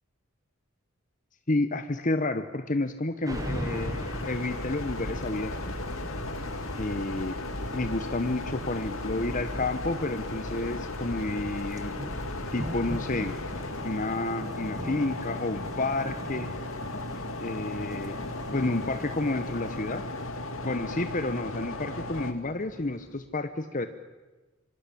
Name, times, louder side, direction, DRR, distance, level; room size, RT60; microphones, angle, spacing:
voice 1, 1.5-5.7 6.8-7.4 7.7-12.0 12.5-13.4 13.8-16.5 17.4-18.2 18.5-20.0 20.6-23.9, left 2 dB, 40° left, 9 dB, 1.1 m, -30 dB
sound 1, 3.2-21.1, right 1 dB, 15° right, 0.9 m, -43 dB
sound 2, 3.3-22.3, left 2 dB, 85° left, 2.8 m, -35 dB
sound 3, 8.3-23.2, equal, 65° left, 3.3 m, -53 dB
27.0 x 26.0 x 8.6 m, 1.2 s
head